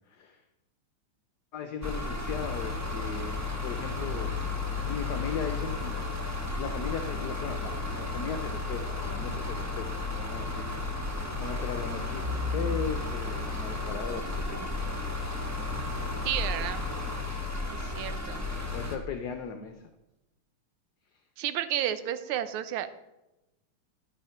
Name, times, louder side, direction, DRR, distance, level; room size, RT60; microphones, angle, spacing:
voice 1, 0.1-0.4 1.5-4.3 4.9-14.9 18.7-19.7, left 6 dB, 65° left, 7 dB, 1.0 m, -38 dB
sound 1, 1.8-19.0, left 3 dB, 15° right, 0.5 m, -33 dB
voice 2, 16.2-16.9 17.7-18.5 21.4-22.9, right 11 dB, 80° right, 12 dB, 1.5 m, -32 dB
12.0 x 4.9 x 5.7 m, 0.95 s
omnidirectional pair, 2.3 m